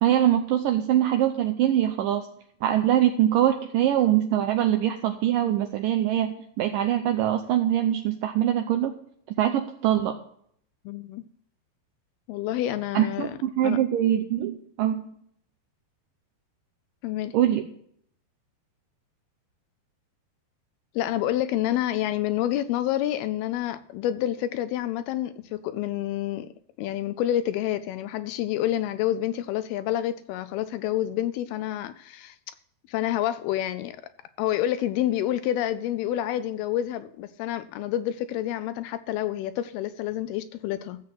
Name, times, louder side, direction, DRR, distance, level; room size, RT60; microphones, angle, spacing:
voice 1, 0.0-2.3 2.6-9.0 9.4-10.2 12.9-15.1 17.3-17.6, right 11 dB, 85° right, 1.9 m, -23 dB
voice 2, 10.9-11.2 12.3-13.4 13.6-13.8 17.0-17.4 21.0-26.5 26.8-32.4 32.9-34.0 34.4-41.0, left 12 dB, 80° left, 2.3 m, -28 dB
15.0 x 7.4 x 5.9 m
omnidirectional pair, 4.9 m